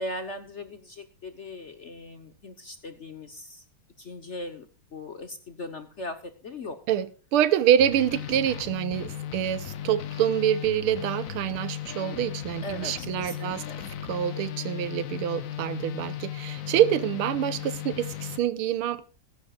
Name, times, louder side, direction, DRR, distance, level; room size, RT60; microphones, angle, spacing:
voice 1, 0.0-3.6 4.0-4.7 4.9-6.2 6.4-6.8 12.6-13.8, left 1 dB, 45° left, 1.0 m, -39 dB
voice 2, 6.9-13.6 14.0-19.1, right 10 dB, 85° right, 1.7 m, -26 dB
sound 1, 7.8-18.4, left 11 dB, 70° left, 0.8 m, -36 dB
16.0 x 14.5 x 2.4 m
omnidirectional pair, 2.4 m